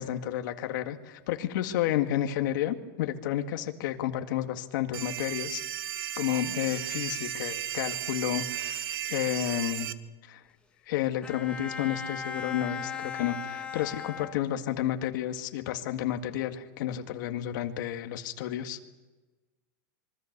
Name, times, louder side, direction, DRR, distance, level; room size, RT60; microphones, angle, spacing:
voice 1, 0.0-5.6 6.2-9.9 10.2-10.4 10.9-18.8, left 12 dB, 60° left, 6 dB, 2.1 m, -31 dB
sound 1, 4.9-9.9, right 11 dB, 90° right, 1.3 m, -35 dB
Bowed string instrument, 11.2-14.9, left 6 dB, 10° left, 1.9 m, -38 dB
26.0 x 24.0 x 6.9 m, 1.2 s
supercardioid pair, 175°, 12 cm